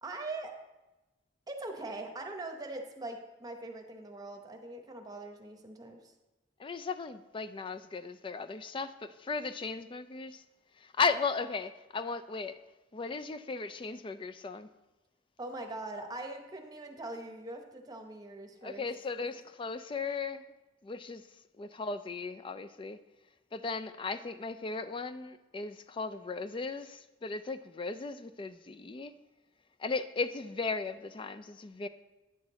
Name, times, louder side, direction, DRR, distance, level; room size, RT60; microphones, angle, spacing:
voice 1, 0.0-0.6 1.5-6.1 15.4-18.9 19.2-19.3, right 2 dB, 20° right, 0.9 m, -42 dB
voice 2, 6.6-10.4 10.8-12.5 12.9-14.7 18.6-20.5 20.8-21.2 21.6-23.0 23.5-29.1 29.8-31.9, left 4 dB, 30° left, 0.4 m, -36 dB
9.7 x 6.5 x 4.0 m
head